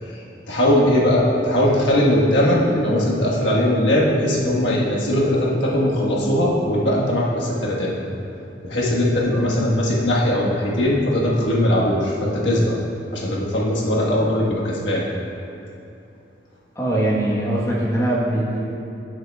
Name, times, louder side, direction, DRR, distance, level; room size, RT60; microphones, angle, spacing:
voice 1, 0.0-7.9 8.6-12.8 13.1-15.1, left 1 dB, 80° left, -4 dB, 1.4 m, -20 dB
voice 2, 16.7-18.8, right 1 dB, 15° left, -6 dB, 1.2 m, -22 dB
13.0 x 6.5 x 2.3 m, 2.8 s
head